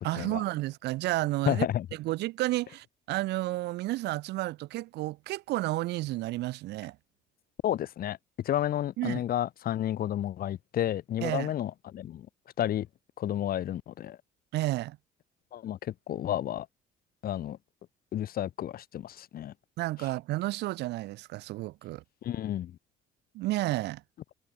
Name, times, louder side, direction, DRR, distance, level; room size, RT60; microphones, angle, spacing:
voice 1, 0.0-1.7 2.0-7.0 9.0-9.2 11.2-11.5 14.5-15.0 19.8-22.0 23.3-24.0, right 18 dB, 80° right, 2.0 m, -31 dB
voice 2, 1.5-1.9 7.6-12.3 12.6-12.9 13.2-14.2 15.5-16.7 17.2-17.6 18.1-19.5 22.2-22.8, left 11 dB, 60° left, 5.0 m, -31 dB
cardioid pair, 110°, 17 cm